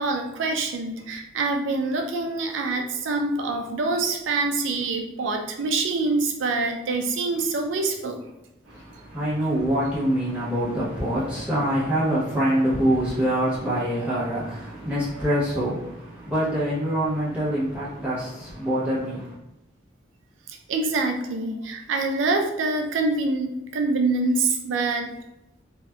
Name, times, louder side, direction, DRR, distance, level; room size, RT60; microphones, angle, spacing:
voice 1, 0.0-8.2 20.7-25.1, right 3 dB, 85° right, 4 dB, 0.4 m, -25 dB
voice 2, 8.7-19.3, equal, 5° right, -10 dB, 0.5 m, -25 dB
2.6 x 2.2 x 2.2 m, 0.90 s
head